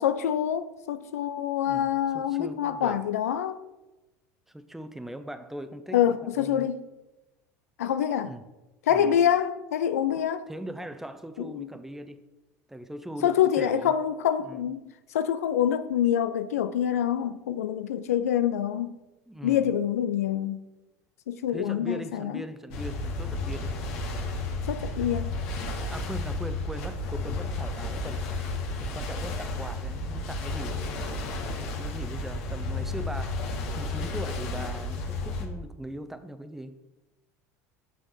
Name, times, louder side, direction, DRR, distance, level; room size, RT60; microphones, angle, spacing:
voice 1, 0.0-3.6 5.9-6.8 7.8-8.3 8.9-10.5 11.4-11.7 13.2-14.8 15.1-19.0 19.4-20.6 21.3-22.4 24.7-25.3, left 9 dB, 90° left, 0.3 m, -26 dB
voice 2, 1.6-3.0 4.5-6.7 8.2-8.4 8.9-9.2 10.5-12.2 12.7-13.9 14.4-14.7 19.3-19.7 21.5-23.8 25.9-28.3 28.8-30.9 31.7-33.4 33.8-36.7, right 1 dB, 5° right, 0.7 m, -40 dB
sound 1, 22.7-35.5, left 2 dB, 70° left, 1.3 m, -32 dB
6.7 x 6.0 x 3.9 m
hypercardioid pair, 80°, 8 cm